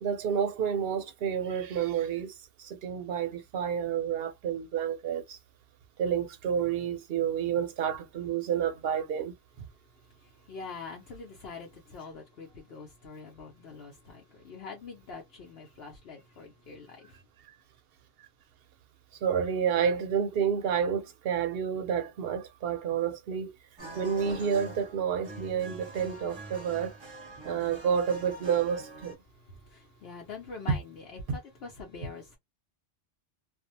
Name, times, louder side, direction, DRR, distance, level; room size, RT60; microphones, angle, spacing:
voice 1, 0.0-5.4 6.0-9.3 19.2-23.5 23.9-27.0 27.4-29.2 31.3-31.4, right 8 dB, 65° right, 0.8 m, -29 dB
voice 2, 10.0-17.2 29.3-32.4, left 4 dB, 65° left, 0.9 m, -45 dB
sound 1, 23.8-29.1, right 2 dB, 30° right, 0.6 m, -45 dB
2.5 x 2.1 x 2.7 m
omnidirectional pair, 1.1 m